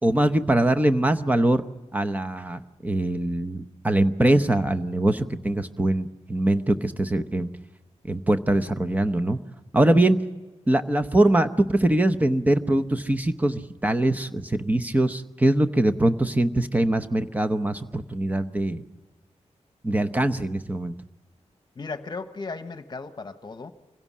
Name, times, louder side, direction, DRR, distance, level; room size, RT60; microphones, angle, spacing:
voice 1, 0.0-1.6 1.9-7.5 8.0-9.4 9.7-10.2 10.7-18.8 19.8-20.9, right 1 dB, 15° right, 8 dB, 0.8 m, -22 dB
voice 2, 21.7-23.7, left 4 dB, 35° left, 9 dB, 1.1 m, -36 dB
25.5 x 16.5 x 7.4 m, 1.2 s
wide cardioid pair, 150°, 12 cm